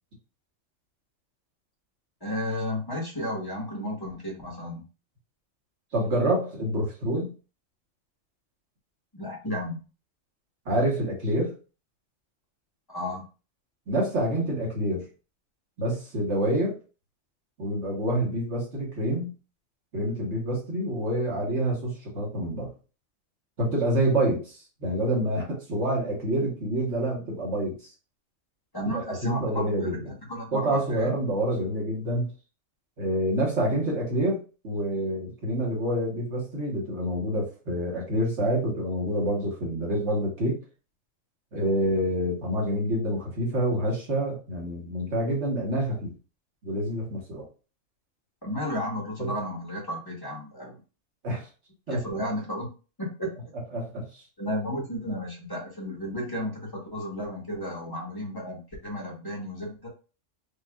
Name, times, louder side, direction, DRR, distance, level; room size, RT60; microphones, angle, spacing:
voice 1, 2.2-4.8 9.1-9.8 12.9-13.2 28.7-31.2 48.4-50.8 51.9-52.7 53.0-53.3 54.4-59.9, equal, 20° left, -3 dB, 1.3 m, -33 dB
voice 2, 5.9-7.3 10.6-11.5 13.9-15.1 15.8-16.8 17.6-19.3 19.9-22.7 23.6-27.8 28.9-30.0 30.5-32.3 33.0-40.6 41.5-46.1 46.6-47.5 49.2-49.3 51.2-51.5 51.9-52.0 53.7-54.2, right 1 dB, 65° right, -2 dB, 1.6 m, -27 dB
5.2 x 2.5 x 2.4 m, 0.34 s
omnidirectional pair, 1.3 m